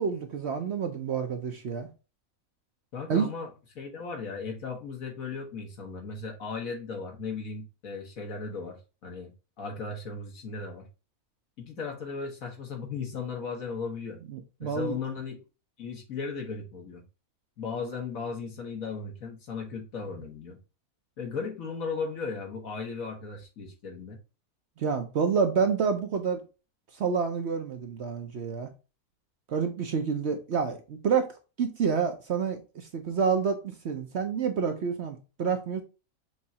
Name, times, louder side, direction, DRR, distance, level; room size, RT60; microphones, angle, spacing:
voice 1, 0.0-1.9 3.1-3.3 14.3-15.0 24.8-26.4 26.9-28.7 29.5-31.3 31.6-35.8, right 6 dB, 55° right, 0.8 m, -28 dB
voice 2, 2.9-9.3 9.6-10.8 11.6-14.2 14.6-15.4 15.8-17.0 17.6-20.6 21.2-24.2, left 4 dB, 65° left, 1.7 m, -36 dB
6.1 x 3.1 x 2.7 m
omnidirectional pair, 1.6 m